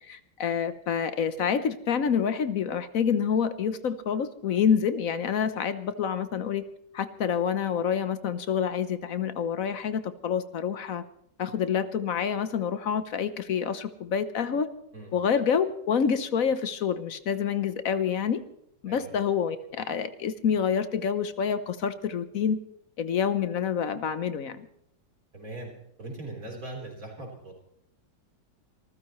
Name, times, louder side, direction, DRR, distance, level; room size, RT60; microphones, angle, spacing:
voice 1, 0.1-6.6 6.9-11.0 11.4-14.7 15.1-18.4 18.8-22.6 23.0-24.7, left 7 dB, 55° left, 13 dB, 1.1 m, -27 dB
voice 2, 25.3-25.7 26.0-27.6, right 2 dB, 50° right, 1 dB, 4.3 m, -40 dB
26.5 x 14.5 x 3.1 m, 0.74 s
omnidirectional pair, 1.9 m